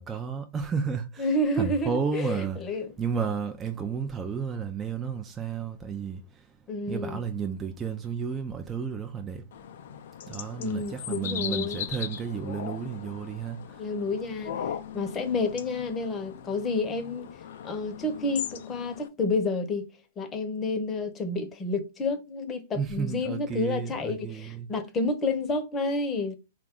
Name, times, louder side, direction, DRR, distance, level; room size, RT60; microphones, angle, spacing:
voice 1, 0.0-1.3 1.6-2.6 3.0-6.6 6.9-9.5 10.3-13.9 22.7-24.7, right 6 dB, 20° right, 0.5 m, -32 dB
voice 2, 1.2-2.9 6.7-7.2 10.6-11.8 13.8-17.3 17.6-19.9 20.2-26.4, left 2 dB, 20° left, 0.8 m, -30 dB
sound 1, 9.5-19.1, left 9 dB, 60° left, 0.4 m, -38 dB
3.9 x 2.4 x 3.6 m
hypercardioid pair, 120°, 0 cm